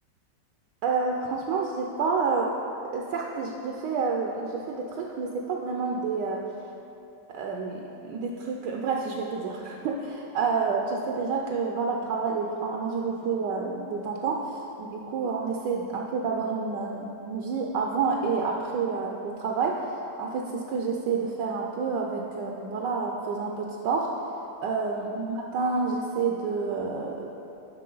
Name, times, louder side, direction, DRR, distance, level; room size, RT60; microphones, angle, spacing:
voice 1, 0.8-2.5 2.9-6.4 7.3-19.9 20.2-24.1 24.6-27.3, right 4 dB, 75° right, 0 dB, 1.2 m, -29 dB
7.6 x 5.9 x 3.8 m, 2.8 s
omnidirectional pair, 2.0 m